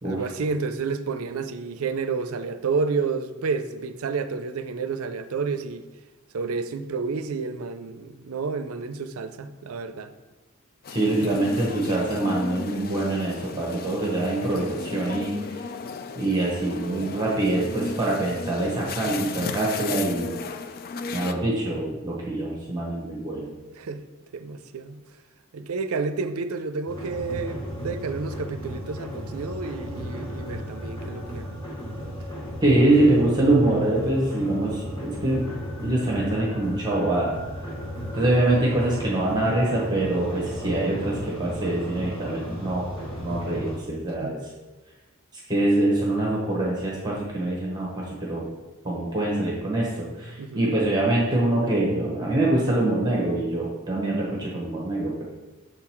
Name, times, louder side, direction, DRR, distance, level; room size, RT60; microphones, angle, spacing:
voice 1, 0.0-5.9 6.3-10.1 23.8-24.0 24.3-25.0 25.5-31.6 44.2-44.4 50.4-50.8, right 4 dB, 90° right, 0.5 m, -30 dB
sound 1, 10.8-21.3, left 5 dB, 45° left, 0.3 m, -35 dB
voice 2, 10.9-15.6 16.1-20.4 21.1-23.5 32.6-35.5 35.8-37.3 38.1-42.8 43.2-44.4 45.5-48.5 48.8-55.2, right 2 dB, 20° right, 1.1 m, -24 dB
sound 2, 26.9-43.8, equal, 25° left, 2.2 m, -35 dB
6.7 x 3.9 x 4.4 m
head